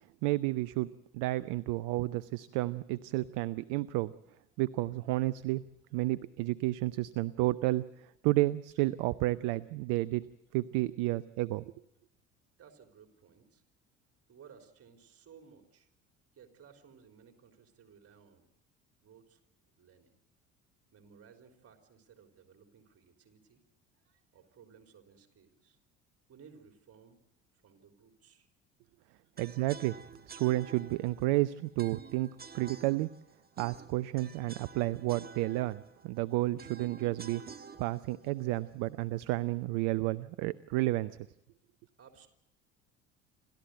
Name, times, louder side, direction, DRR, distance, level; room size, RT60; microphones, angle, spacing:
voice 1, 0.2-0.9 1.1-4.1 4.6-5.6 5.9-10.2 10.5-11.6 29.4-29.9 30.3-32.3 32.5-33.1 33.6-37.4 37.8-41.1, right 18 dB, 60° right, 17 dB, 0.7 m, -31 dB
voice 2, 12.6-13.6 14.3-15.9 16.3-18.5 19.0-19.4 19.8-20.1 20.9-23.6 23.9-25.8 26.3-27.2 27.5-28.5 37.7-37.8 38.3-38.7 42.0-42.3, right 6 dB, 40° right, 5 dB, 3.9 m, -58 dB
sound 1, 29.4-39.4, right 5 dB, 25° right, 1.4 m, -51 dB
28.0 x 13.5 x 7.9 m, 0.85 s
hypercardioid pair, 60°, 36 cm